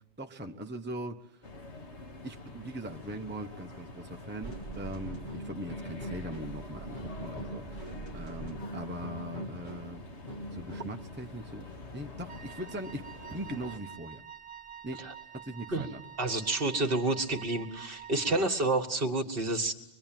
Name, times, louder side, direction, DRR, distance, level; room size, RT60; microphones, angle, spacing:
voice 1, 0.2-1.4 2.2-10.0 10.5-11.7 11.9-13.0 13.3-14.2 14.8-15.1 15.3-16.0 18.3-18.5, right 1 dB, 10° right, 3 dB, 1.0 m, -40 dB
sound 1, 1.4-13.8, left 3 dB, 85° left, 2.2 m, -47 dB
sound 2, 4.4-11.1, right 1 dB, 45° left, 3.0 m, -42 dB
Wind instrument woodwind instrument, 12.3-18.6, right 9 dB, 25° right, 2.1 m, -48 dB
voice 2, 16.2-19.7, right 2 dB, 55° right, 5 dB, 2.1 m, -29 dB
24.0 x 23.5 x 9.1 m, 0.89 s
omnidirectional pair, 1.1 m